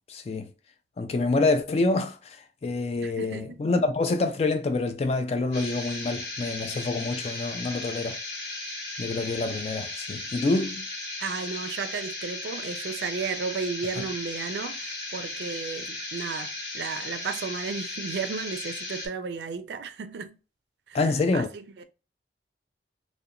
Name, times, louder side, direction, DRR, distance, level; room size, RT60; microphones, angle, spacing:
voice 1, 0.1-0.5 1.0-2.4 2.6-8.2 9.0-10.9 14.0-14.1 20.9-21.5, left 3 dB, 35° left, 0.3 m, -27 dB
voice 2, 3.0-3.6 11.2-20.4 20.9-21.8, right 5 dB, 70° right, 0.4 m, -34 dB
sound 1, 5.5-19.1, left 2 dB, 65° left, 1.0 m, -36 dB
2.8 x 2.1 x 2.4 m
head